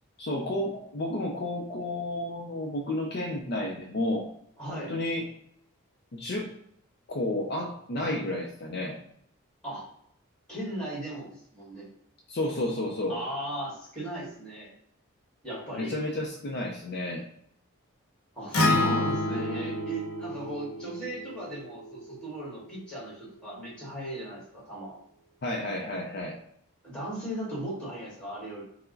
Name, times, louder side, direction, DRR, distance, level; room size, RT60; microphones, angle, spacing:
voice 1, 0.2-4.3 4.7-5.3 6.1-6.5 7.1-9.0 12.3-13.2 15.8-17.2 25.4-26.4, left 1 dB, 45° left, 1 dB, 0.4 m, -31 dB
voice 2, 4.6-5.0 9.6-9.9 10.5-11.9 13.1-14.7 15.4-15.9 18.3-25.0 26.8-28.6, right 1 dB, 5° left, -6 dB, 1.5 m, -37 dB
Acoustic guitar, 18.5-22.8, left 2 dB, 85° left, 0.8 m, -29 dB
4.5 x 2.1 x 3.8 m, 0.69 s
head